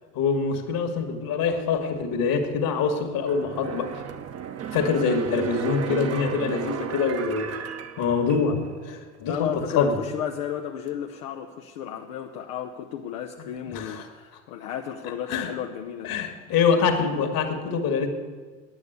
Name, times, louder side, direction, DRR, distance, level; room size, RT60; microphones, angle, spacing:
voice 1, 0.2-3.9 4.7-7.6 8.0-8.6 8.8-9.9 13.7-14.0 15.3-15.5 16.0-18.1, left 5 dB, 60° left, 5 dB, 2.0 m, -25 dB
sound 1, 3.2-8.8 9.2-9.3, right 8 dB, 40° right, 0.9 m, -34 dB
voice 2, 9.3-16.1, left 9 dB, 85° left, 2 dB, 0.8 m, -33 dB
9.6 x 9.0 x 8.0 m, 1.4 s
hypercardioid pair, 80°, 38 cm